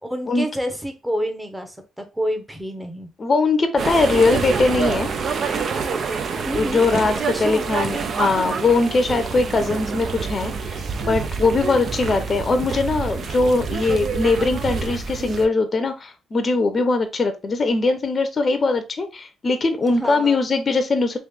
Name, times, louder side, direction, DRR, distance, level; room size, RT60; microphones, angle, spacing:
voice 1, 0.0-3.1 6.4-6.9 7.3-7.7 20.0-20.4, equal, 5° right, 5 dB, 0.9 m, -28 dB
voice 2, 3.2-5.1 6.5-21.2, left 3 dB, 35° left, 8 dB, 0.6 m, -21 dB
sound 1, 3.8-15.5, right 5 dB, 55° right, 0.5 m, -27 dB
sound 2, 5.6-13.4, right 4 dB, 70° right, 0.9 m, -43 dB
3.2 x 3.0 x 3.4 m, 0.28 s
cardioid pair, 90°, 0 cm